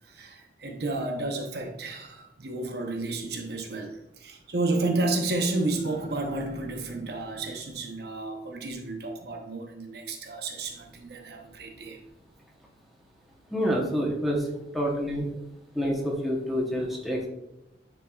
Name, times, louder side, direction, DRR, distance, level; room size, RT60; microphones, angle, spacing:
voice 1, 0.1-12.0 14.7-14.8, right 2 dB, 55° right, 2 dB, 0.8 m, -31 dB
voice 2, 13.5-14.5 14.7-15.3 15.7-17.3, equal, ahead, -3 dB, 0.9 m, -27 dB
9.7 x 4.3 x 2.4 m, 0.88 s
head